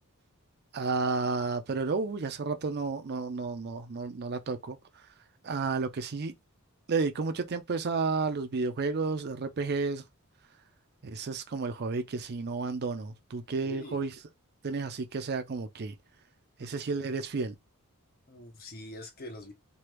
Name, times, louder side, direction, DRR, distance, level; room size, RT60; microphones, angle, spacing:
voice 1, 0.7-4.8 5.4-6.3 6.9-10.0 11.0-14.1 14.6-15.9 16.6-17.6, right 4 dB, 45° right, 0.5 m, -31 dB
voice 2, 13.6-14.0 16.6-16.7 18.3-19.5, left 1 dB, 40° left, 0.7 m, -44 dB
3.3 x 2.3 x 3.0 m
head